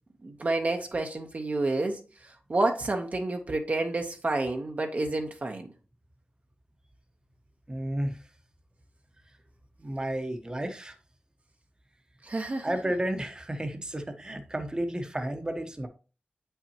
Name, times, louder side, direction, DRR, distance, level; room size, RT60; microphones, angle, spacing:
voice 1, 0.2-5.7 12.2-12.7, right 2 dB, 45° right, 0.9 m, -29 dB
voice 2, 7.7-8.3 9.8-11.0 12.6-15.9, right 1 dB, 20° right, 1.0 m, -32 dB
8.1 x 5.7 x 2.9 m
wide cardioid pair, 100°, 4 cm